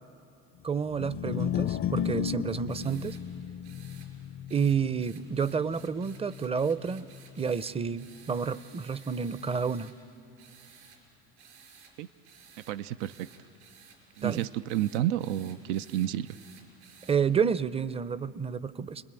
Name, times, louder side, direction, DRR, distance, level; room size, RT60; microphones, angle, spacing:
voice 1, 0.6-3.2 4.5-7.1 7.4-9.9 14.2-14.4 17.1-19.0, right 6 dB, 20° right, 17 dB, 0.6 m, -29 dB
sound 1, 0.9-7.2, left 10 dB, 45° left, 0.5 m, -35 dB
sound 2, 2.7-3.2 3.6-4.1 4.5-9.9 10.4-11.0 11.4-11.9 12.2-17.2, right 6 dB, 70° right, 5.5 m, -55 dB
voice 2, 12.7-13.3 14.2-16.3, right 12 dB, 85° right, 14 dB, 0.6 m, -30 dB
29.5 x 21.0 x 9.0 m, 2.8 s
supercardioid pair, 100°, 31 cm